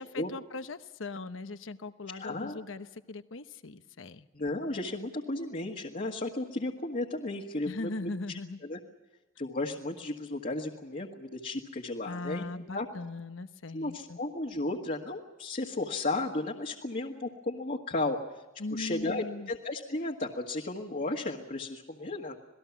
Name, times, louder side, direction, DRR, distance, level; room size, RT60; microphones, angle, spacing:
voice 1, 0.0-4.3 7.7-8.6 12.1-14.2 18.6-19.5, left 3 dB, 90° left, 11 dB, 1.0 m, -39 dB
voice 2, 2.1-2.6 4.3-8.8 9.4-12.4 12.7-12.9 13.7-18.2 18.7-22.4, left 2 dB, 45° left, 0 dB, 1.7 m, -34 dB
27.0 x 19.0 x 7.2 m, 1.1 s
head